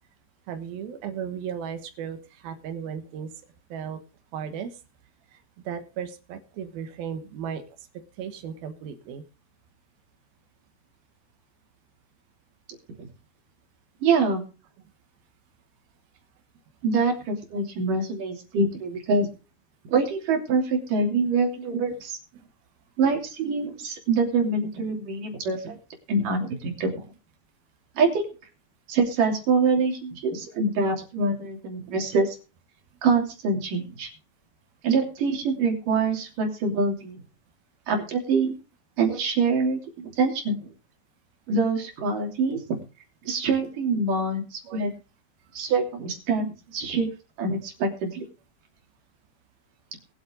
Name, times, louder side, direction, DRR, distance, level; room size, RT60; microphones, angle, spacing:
voice 1, 0.5-3.3 3.7-4.0 4.3-4.7 5.7-7.6 8.2-9.2 21.9-22.0 25.7-25.8 44.7-44.9, right 8 dB, 85° right, 7 dB, 3.2 m, -35 dB
voice 2, 14.0-14.4 16.8-19.3 19.9-22.2 23.0-25.8 26.1-27.0 28.0-28.3 28.9-32.4 33.0-34.1 34.8-37.2 37.9-38.6 39.0-40.7 41.5-42.6 43.2-44.9 45.5-47.1 47.4-48.2, right 4 dB, 65° right, 2 dB, 4.5 m, -25 dB
21.5 x 8.0 x 3.7 m, 0.33 s
omnidirectional pair, 4.1 m